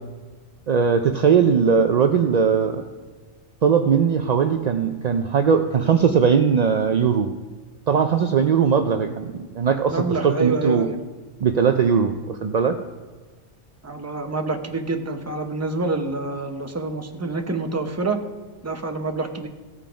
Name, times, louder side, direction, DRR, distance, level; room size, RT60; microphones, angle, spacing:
voice 1, 0.7-2.9 3.6-7.3 7.9-10.9 11.4-12.8, right 6 dB, 65° right, 6 dB, 0.4 m, -19 dB
voice 2, 9.9-11.0 13.8-18.2 18.6-19.5, right 3 dB, 15° right, 5 dB, 0.6 m, -27 dB
15.5 x 5.7 x 5.0 m, 1.4 s
omnidirectional pair, 1.2 m